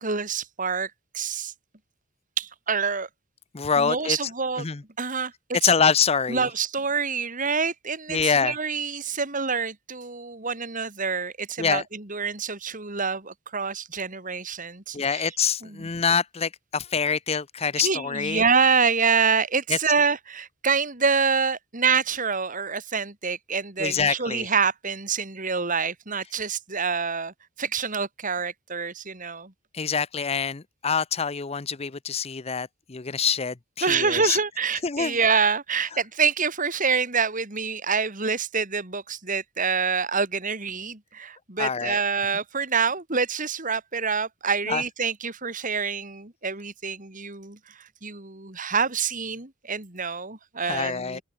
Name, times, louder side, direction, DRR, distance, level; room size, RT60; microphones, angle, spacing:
voice 1, 0.0-1.5 2.4-3.1 3.8-4.6 5.0-5.3 5.6-5.7 6.3-15.3 15.6-15.9 17.8-29.5 33.8-51.2, right 5 dB, 40° right, 3.0 m, -26 dB
voice 2, 3.5-4.2 4.6-4.8 5.6-6.5 8.1-8.5 11.6-11.8 14.9-18.4 19.7-19.8 23.8-24.5 29.7-34.4 34.8-35.2 41.6-42.0 44.7-44.8 50.6-51.2, left 6 dB, 30° left, 0.7 m, -25 dB
open air
head